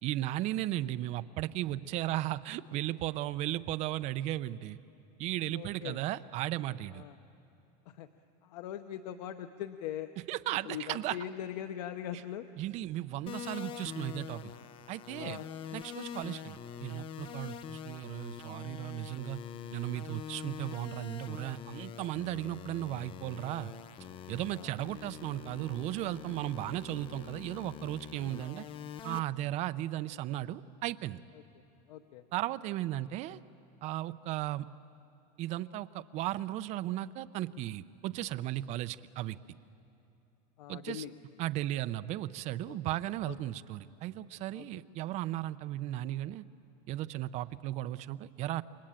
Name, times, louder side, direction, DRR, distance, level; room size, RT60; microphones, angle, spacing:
voice 1, 0.0-4.8 5.2-7.0 10.3-11.2 12.6-14.4 14.9-15.4 15.7-19.4 19.7-23.7 24.3-28.6 29.0-31.2 32.3-33.4 33.8-34.6 35.4-39.4 40.7-41.0 41.4-46.4 46.9-48.6, right 14 dB, 35° right, 13 dB, 0.6 m, -36 dB
voice 2, 5.5-6.0 6.9-7.2 7.9-8.1 8.4-10.1 10.6-12.5 15.2-15.5 24.6-24.7 31.9-32.2 40.6-41.1 42.7-42.8 43.3-43.4 44.5-44.8, left 11 dB, 80° left, 8 dB, 1.0 m, -41 dB
sound 1, 13.3-29.2, left 8 dB, 25° left, 0.7 m, -45 dB
28.5 x 23.0 x 8.9 m, 2.9 s
supercardioid pair, 170°, 21 cm